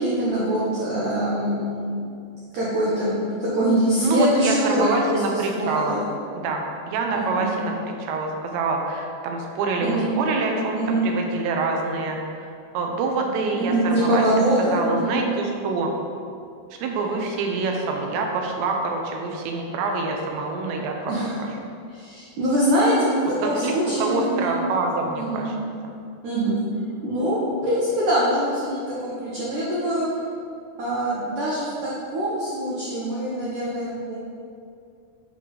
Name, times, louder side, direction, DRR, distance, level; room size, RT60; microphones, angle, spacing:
voice 1, 0.0-2.1 2.5-6.0 7.1-7.5 9.8-10.1 10.7-11.0 13.5-15.2 21.1-21.3 21.9-23.2 23.4-24.6 25.1-25.5 26.2-26.6 27.0-30.1 30.8-34.2, right 1 dB, 70° right, -8 dB, 2.0 m, -23 dB
voice 2, 4.0-6.0 6.4-7.7 8.0-12.2 12.7-14.2 14.6-15.9 16.7-21.1 23.4-23.7 24.0-25.6, right 3 dB, 85° right, 2 dB, 3.0 m, -26 dB
7.5 x 3.4 x 5.2 m, 2.4 s
omnidirectional pair, 4.9 m